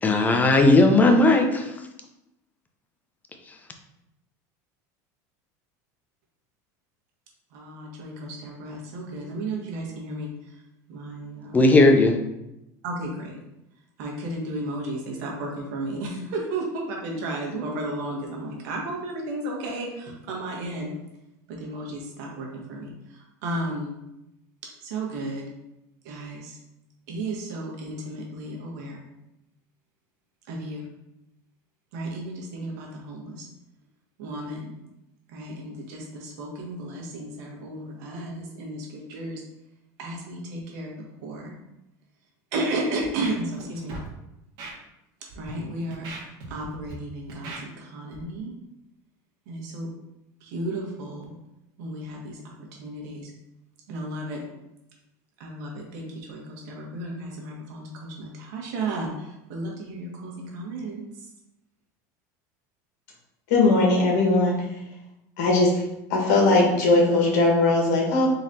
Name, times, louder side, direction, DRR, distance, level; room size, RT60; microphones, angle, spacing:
voice 1, 0.0-1.7 11.5-12.2, left 2 dB, 15° left, 4 dB, 0.7 m, -17 dB
voice 2, 7.5-10.5 10.9-11.7 12.8-13.4 14.0-20.9 21.5-23.9 24.8-25.4 26.0-26.6 27.1-29.0 30.5-30.8 31.9-33.5 34.2-34.7 35.3-39.4 40.0-40.9 41.2-41.6 42.5-43.9 45.3-48.5 49.5-49.9 50.4-51.3 51.8-53.3 53.9-54.4 55.4-61.3, right 2 dB, 75° right, -1 dB, 1.4 m, -33 dB
Scratching (performance technique), 43.0-43.6 43.9-44.1 44.6-44.7 45.3-45.5 45.9-46.9 47.3-47.6 48.1-48.2, right 2 dB, 60° right, 1.5 m, -38 dB
voice 3, 63.5-64.5 65.4-65.7 66.1-68.3, left 2 dB, 75° left, -1 dB, 1.5 m, -19 dB
4.0 x 3.1 x 4.1 m, 0.89 s
supercardioid pair, 120°, 9 cm